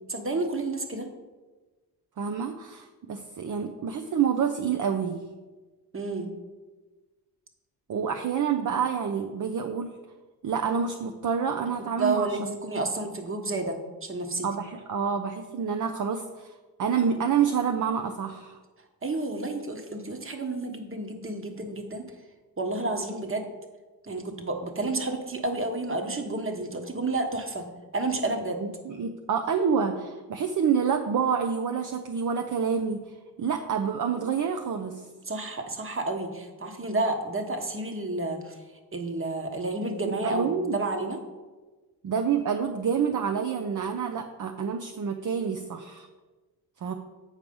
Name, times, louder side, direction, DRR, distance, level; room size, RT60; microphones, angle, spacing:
voice 1, 0.1-1.1 5.9-6.3 12.0-14.5 19.0-22.0 22.6-23.4 24.0-27.6 27.9-28.6 35.3-38.6 38.9-41.2, right 2 dB, 30° right, 5 dB, 1.3 m, -30 dB
voice 2, 2.2-5.2 7.9-10.0 10.4-12.4 14.4-16.5 16.8-18.6 28.6-35.1 40.1-40.8 42.0-46.1 46.8-46.9, right 7 dB, 50° right, 5 dB, 0.7 m, -28 dB
8.2 x 4.6 x 5.4 m, 1.3 s
cardioid pair, 70°, 39 cm